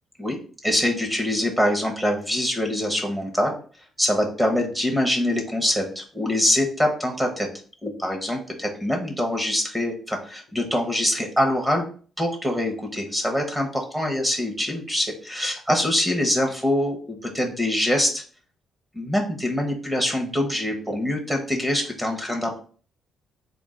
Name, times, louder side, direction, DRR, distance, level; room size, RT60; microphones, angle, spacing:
voice 1, 0.6-3.6 4.0-7.5 7.8-11.8 12.2-18.2 18.9-22.6, left 1 dB, 10° right, 2 dB, 1.0 m, -24 dB
3.7 x 2.4 x 3.7 m, 0.41 s
cardioid pair, 90°, 0 cm